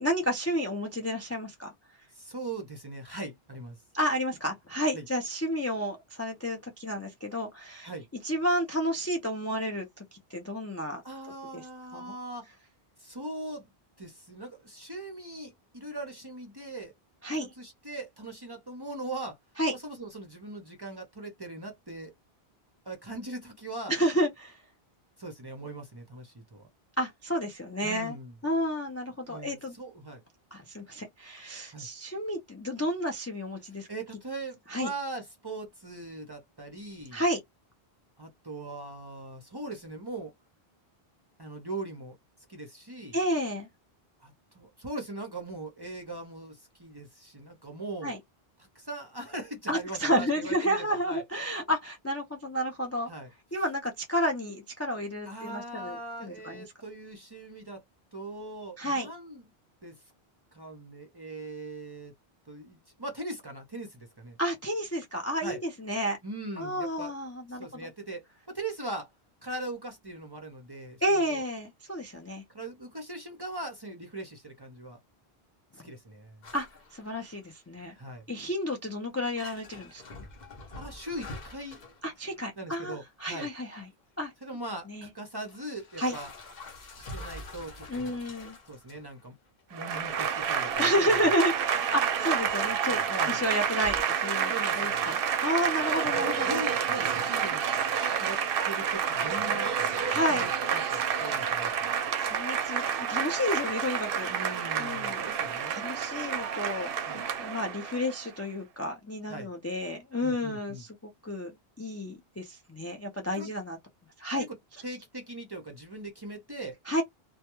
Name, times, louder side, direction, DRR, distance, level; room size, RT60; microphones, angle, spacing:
voice 1, 0.0-1.7 3.9-7.9 8.2-11.0 11.5-11.6 11.9-12.1 17.2-17.5 19.6-19.7 23.9-24.6 27.0-28.2 28.4-29.7 30.5-33.9 34.7-34.9 37.1-37.4 43.1-43.7 48.0-48.2 49.7-53.1 53.5-56.6 58.8-59.1 64.4-66.2 66.6-67.9 71.0-72.4 76.5-76.7 76.9-77.9 78.3-80.0 82.0-83.9 84.2-84.3 84.9-85.1 86.0-86.2 87.9-88.6 90.8-96.6 100.1-100.5 102.2-104.3 104.8-105.3 105.7-110.9 111.2-113.8 114.2-114.5 116.9-117.0, equal, 25° left, 0.3 m, -31 dB
voice 2, 2.1-3.8 4.9-5.1 7.8-8.0 11.0-12.5 13.0-13.7 14.0-16.9 17.4-19.4 19.7-22.1 22.9-24.0 25.2-26.7 27.8-28.3 29.3-30.2 31.7-31.9 33.9-37.2 38.2-40.3 41.4-42.2 42.5-43.2 44.2-48.1 48.6-51.2 53.1-53.3 55.3-57.8 58.1-59.4 59.8-60.0 60.5-62.1 62.5-64.4 65.4-65.6 66.2-67.1 67.5-69.1 69.4-71.4 72.5-75.0 75.8-76.4 77.9-78.2 80.7-81.8 82.6-83.5 84.4-86.3 87.0-88.2 88.7-89.3 89.7-91.1 93.1-93.4 94.5-95.1 96.2-97.7 98.2-98.4 98.7-99.7 100.3-101.9 104.3-105.8 107.1-107.2 109.3-109.5 110.2-110.8 113.3-113.5 114.4-114.5 114.8-116.7, right 2 dB, 30° right, 0.5 m, -40 dB
Ice Cubes And Water In Metal Sink, 76.4-77.9 78.2-78.6 79.0-79.1 79.4-82.8 83.8-83.9 84.7-84.8 85.4-89.2 89.6-89.9 90.7-90.8 92.0-92.1 92.6-94.0, left 2 dB, 50° left, 0.7 m, -46 dB
Applause / Crowd, 89.7-108.3, right 7 dB, 65° right, 0.7 m, -29 dB
2.2 x 2.1 x 2.9 m
omnidirectional pair, 1.0 m